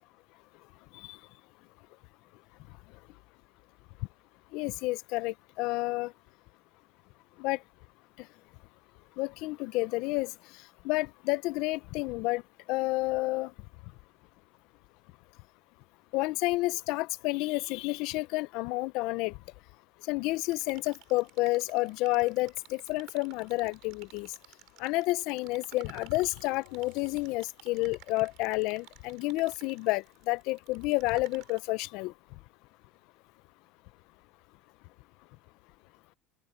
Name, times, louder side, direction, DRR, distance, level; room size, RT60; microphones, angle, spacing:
voice 1, 4.5-6.1 7.4-7.6 9.2-10.3 10.8-12.4 12.7-13.5 16.1-19.3 20.1-24.3 24.8-32.1, left 21 dB, 60° left, 0.6 m, -30 dB
sound 1, 20.3-31.6, right 20 dB, 60° right, 4.5 m, -55 dB
sound 2, 26.2-28.0, left 24 dB, 85° left, 4.6 m, -56 dB
supercardioid pair, 145°, 0 cm